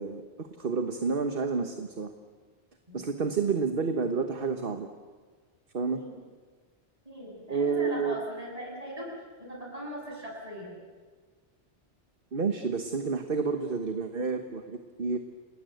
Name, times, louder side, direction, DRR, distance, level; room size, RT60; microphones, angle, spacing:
voice 1, 0.0-2.1 2.9-4.9 5.7-6.0 7.5-8.2 12.3-15.2, right 5 dB, 60° right, 6 dB, 1.4 m, -29 dB
voice 2, 2.9-3.3 5.9-6.2 7.0-9.1 9.4-10.7 13.4-13.5, equal, 35° right, -2 dB, 7.5 m, -40 dB
29.5 x 20.0 x 8.0 m, 1.5 s
omnidirectional pair, 1.1 m